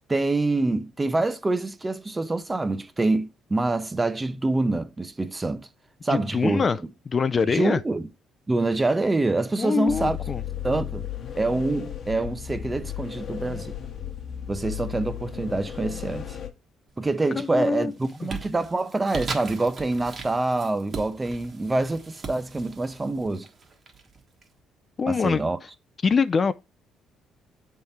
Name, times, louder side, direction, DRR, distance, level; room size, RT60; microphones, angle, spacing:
voice 1, 0.1-5.7 6.0-6.6 7.5-8.1 8.5-10.2 10.6-11.1 11.4-13.7 14.5-16.4 17.0-23.5 25.1-25.6, right 2 dB, 20° right, 0.6 m, -26 dB
voice 2, 6.1-6.8 7.1-7.8 9.6-10.4 17.3-17.9 18.2-18.3 25.0-25.4 26.0-26.5, left 5 dB, 35° left, 0.3 m, -24 dB
sound 1, 9.9-16.5, left 10 dB, 55° left, 1.0 m, -35 dB
sound 2, 16.9-17.4 17.8-24.4, right 4 dB, 45° right, 1.2 m, -39 dB
7.7 x 3.6 x 4.2 m
cardioid pair, 90°, 0 cm